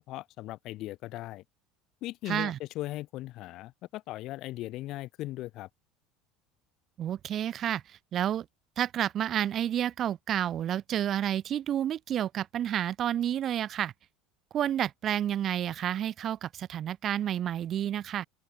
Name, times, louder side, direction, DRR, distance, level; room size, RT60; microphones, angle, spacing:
voice 1, 0.1-1.4 2.0-5.7, left 17 dB, 55° left, 3.3 m, -38 dB
voice 2, 2.3-2.6 7.0-8.4 8.8-13.9 14.5-18.2, right 10 dB, 45° right, 1.4 m, -30 dB
open air
figure-of-eight pair, 70°, 0 cm